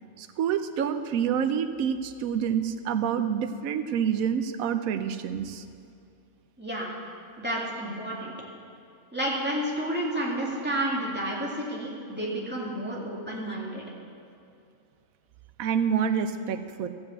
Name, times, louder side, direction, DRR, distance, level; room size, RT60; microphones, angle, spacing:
voice 1, 0.4-5.6 15.6-16.9, right 8 dB, 80° right, 9 dB, 1.1 m, -27 dB
voice 2, 6.6-6.9 7.4-8.3 9.1-13.8, right 1 dB, 5° right, -5 dB, 2.1 m, -30 dB
14.0 x 5.4 x 8.1 m, 2.5 s
omnidirectional pair, 1.5 m